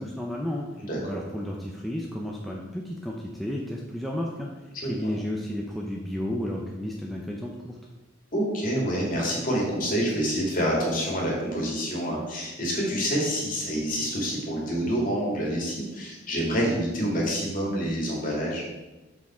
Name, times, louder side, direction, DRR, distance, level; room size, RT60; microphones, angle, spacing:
voice 1, 0.0-7.8, left 1 dB, ahead, -2 dB, 0.6 m, -33 dB
voice 2, 4.8-5.1 8.3-18.6, equal, 45° left, -3 dB, 2.3 m, -27 dB
6.8 x 6.0 x 4.3 m, 1.1 s
head